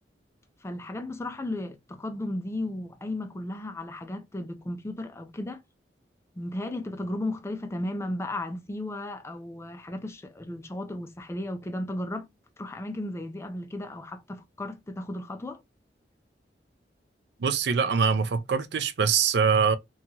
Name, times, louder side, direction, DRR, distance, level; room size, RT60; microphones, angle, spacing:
voice 1, 0.6-5.6 6.4-12.3 12.6-15.6, left 1 dB, 15° left, 0.4 m, -35 dB
voice 2, 17.4-19.8, right 6 dB, 70° right, 0.4 m, -23 dB
2.8 x 2.3 x 2.7 m
head